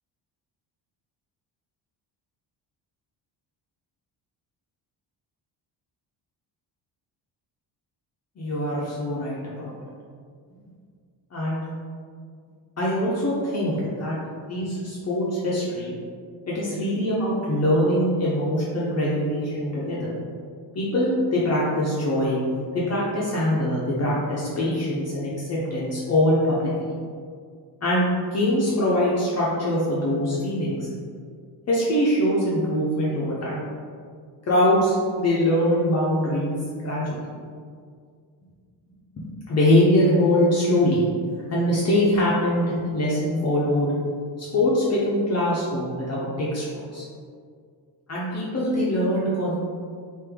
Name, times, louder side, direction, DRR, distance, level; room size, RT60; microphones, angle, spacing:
voice 1, 8.4-9.7 11.3-11.7 12.8-14.1 14.4-15.9 16.5-20.1 20.7-22.4 22.7-26.7 27.8-28.0 28.3-30.8 31.7-33.6 34.5-37.2 39.2-41.1 41.5-43.9 44.4-47.1 48.1-49.5, left 1 dB, 40° left, -7 dB, 0.6 m, -23 dB
3.4 x 2.6 x 3.5 m, 2.1 s
cardioid pair, 130°, 43 cm